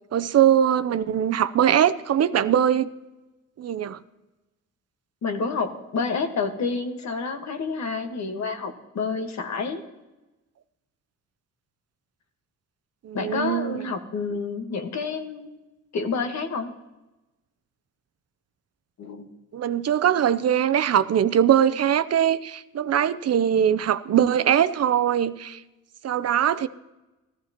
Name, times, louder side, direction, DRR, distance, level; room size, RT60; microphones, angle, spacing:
voice 1, 0.1-2.9 3.6-4.0 13.0-13.8 19.5-25.6 26.0-26.7, right 9 dB, 50° right, 13 dB, 0.6 m, -21 dB
voice 2, 5.2-9.8 13.1-15.5 15.9-16.7 19.0-19.3, left 4 dB, 60° left, 6 dB, 1.5 m, -29 dB
16.0 x 14.0 x 2.9 m, 1.0 s
cardioid pair, 75°, 32 cm